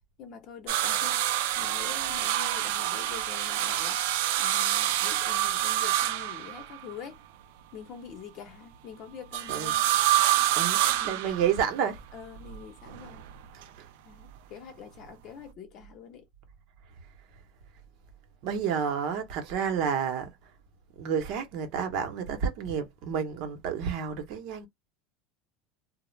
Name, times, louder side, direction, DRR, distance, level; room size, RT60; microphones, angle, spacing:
voice 1, 0.2-7.2 7.7-9.9 11.0-11.2 12.1-13.3 14.0-16.3, left 7 dB, 40° left, 0.8 m, -45 dB
sound 1, 0.7-6.9 9.3-11.8 12.9-13.6 15.1-15.2, right 13 dB, 70° right, 0.4 m, -27 dB
voice 2, 10.5-12.0 13.5-13.9 18.4-20.5 21.0-24.7, right 7 dB, 50° right, 0.8 m, -30 dB
2.4 x 2.0 x 3.1 m
supercardioid pair, 155°, 0 cm